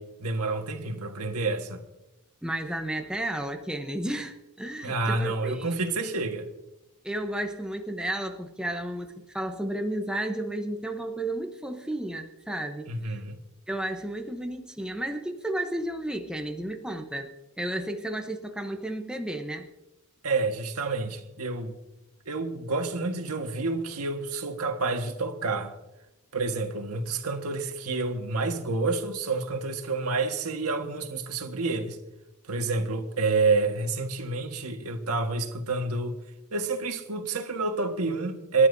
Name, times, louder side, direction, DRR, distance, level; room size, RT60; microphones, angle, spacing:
voice 1, 0.0-1.8 4.8-6.5 12.9-13.4 20.2-21.8 22.2-25.7 26.3-32.0 32.5-36.2 36.5-38.7, right 3 dB, 85° right, 1.6 m, -28 dB
voice 2, 2.4-5.7 7.0-13.1 13.7-17.3 17.6-19.7, right 1 dB, 5° right, 0.8 m, -32 dB
27.0 x 12.0 x 2.7 m
head